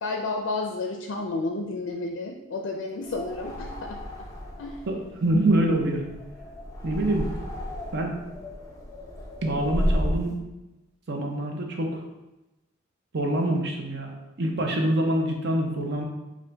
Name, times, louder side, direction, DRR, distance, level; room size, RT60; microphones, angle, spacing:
voice 1, 0.0-4.0 4.6-4.8, left 3 dB, 65° left, 2 dB, 0.4 m, -31 dB
sound 1, 3.0-10.3, equal, 15° left, 0.6 m, -33 dB
voice 2, 4.9-6.0 6.8-7.3 7.9-8.2 9.4-10.3 11.1-12.0 13.1-14.1 14.4-16.0, right 1 dB, 60° right, 2 dB, 0.7 m, -25 dB
5.4 x 2.5 x 3.3 m, 0.99 s
head